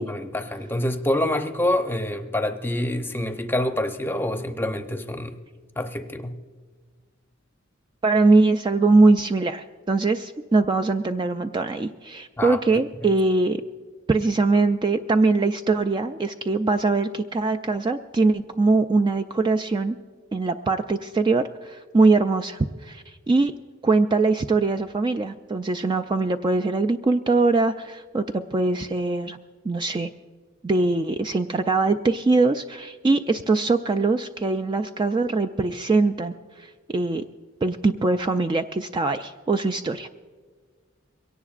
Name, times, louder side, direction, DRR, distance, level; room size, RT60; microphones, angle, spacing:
voice 1, 0.0-5.4 5.8-6.4 12.4-12.6, left 1 dB, 10° left, 0.7 m, -26 dB
voice 2, 8.0-13.6 14.1-20.0 20.3-23.5 23.8-29.4 29.6-30.1 30.6-37.2 37.6-40.1, right 3 dB, 25° right, 0.3 m, -22 dB
23.0 x 17.5 x 2.5 m
head